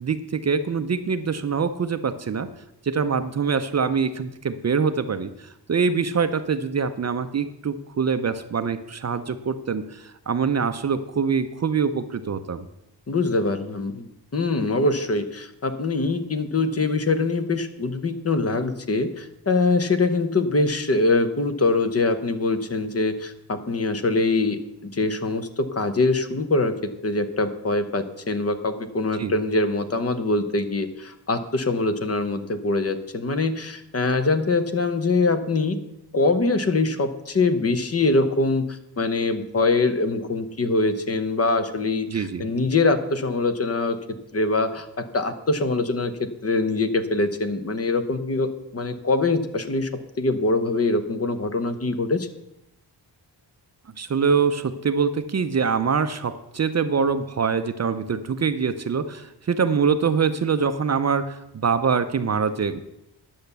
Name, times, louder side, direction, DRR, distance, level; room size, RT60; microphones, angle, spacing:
voice 1, 0.0-2.5 2.8-12.7 29.2-29.3 42.1-42.5 54.0-62.8, right 6 dB, 40° right, 10 dB, 0.6 m, -24 dB
voice 2, 13.1-26.7 27.0-35.8 36.1-44.0 44.3-49.9 50.2-52.3, left 3 dB, 35° left, 9 dB, 0.9 m, -23 dB
10.5 x 7.1 x 6.7 m, 0.84 s
wide cardioid pair, 145°, 43 cm